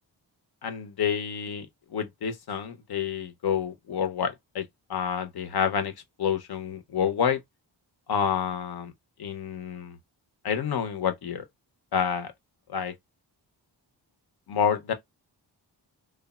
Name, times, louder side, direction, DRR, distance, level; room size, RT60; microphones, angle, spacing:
voice 1, 0.6-4.6 4.9-5.9 6.2-7.4 8.1-8.9 9.2-10.0 10.4-11.4 11.9-12.3 12.7-12.9 14.5-14.9, left 7 dB, 60° left, 0.7 m, -28 dB
3.3 x 2.0 x 2.2 m
cardioid pair, 55°, 44 cm